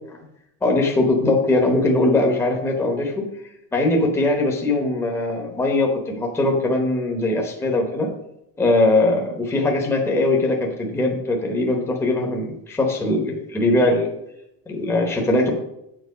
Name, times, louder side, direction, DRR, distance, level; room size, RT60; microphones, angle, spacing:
voice 1, 0.6-3.2 3.7-8.1 8.6-14.1 14.7-15.5, left 2 dB, 10° left, 1 dB, 0.9 m, -21 dB
7.6 x 6.8 x 5.2 m, 0.82 s
cardioid pair, 175°, 33 cm